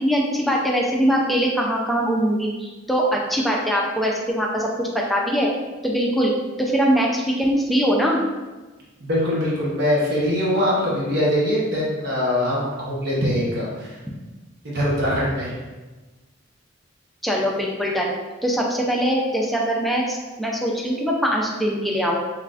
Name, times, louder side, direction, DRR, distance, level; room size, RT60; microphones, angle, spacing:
voice 1, 0.0-5.5 5.8-6.3 6.6-8.2 17.2-18.1 18.4-22.2, equal, ahead, -2 dB, 0.4 m, -22 dB
voice 2, 9.0-14.0 14.6-15.5, equal, 50° right, -6 dB, 0.9 m, -22 dB
3.8 x 3.2 x 2.4 m, 1.2 s
head